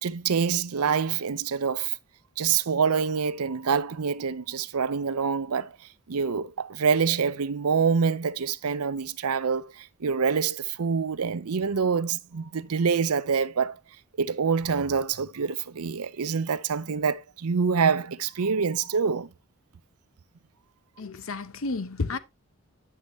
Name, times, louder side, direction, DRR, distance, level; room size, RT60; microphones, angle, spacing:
voice 1, 0.0-2.0 2.4-5.8 6.1-13.8 14.2-19.3, right 6 dB, 90° right, 0.6 m, -26 dB
voice 2, 21.0-22.2, left 3 dB, 70° left, 0.8 m, -31 dB
9.9 x 6.5 x 3.0 m
head